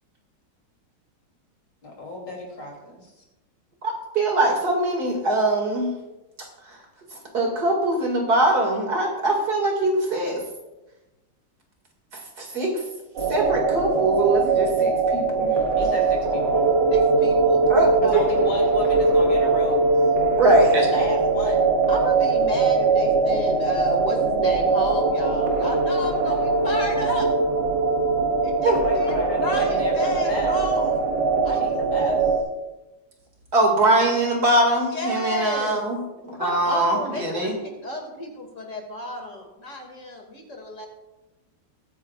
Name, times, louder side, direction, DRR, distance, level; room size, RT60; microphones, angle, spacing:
voice 1, 1.8-3.1 15.8-16.7 18.0-20.0 20.5-21.7 26.3-26.5 28.7-30.6 31.5-32.4 36.3-36.4, left 1 dB, 80° left, -1 dB, 3.6 m, -34 dB
voice 2, 3.8-5.9 6.7-6.8 7.3-10.4 12.1-12.8 13.3-15.6 17.7-18.2 20.4-20.9 28.6-28.8 33.5-36.0 36.2-37.6, right 2 dB, 60° right, 1 dB, 2.8 m, -22 dB
sound 1, 13.2-32.4, right 3 dB, 75° right, 2.2 m, -21 dB
voice 3, 16.9-18.4 21.9-27.3 28.4-31.1 31.4-31.8 34.9-35.8 36.4-40.9, left 1 dB, 45° left, 1 dB, 2.6 m, -32 dB
21.0 x 9.7 x 2.4 m, 1.0 s
omnidirectional pair, 1.9 m